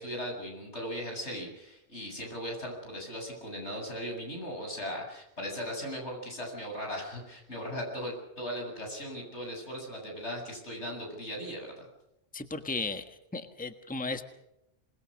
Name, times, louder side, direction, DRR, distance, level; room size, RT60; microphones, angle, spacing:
voice 1, 0.0-11.9, equal, 85° left, 1 dB, 8.4 m, -38 dB
voice 2, 12.3-13.0 13.3-14.2, left 3 dB, 10° left, 7 dB, 1.5 m, -35 dB
27.0 x 21.0 x 6.6 m, 0.85 s
omnidirectional pair, 1.1 m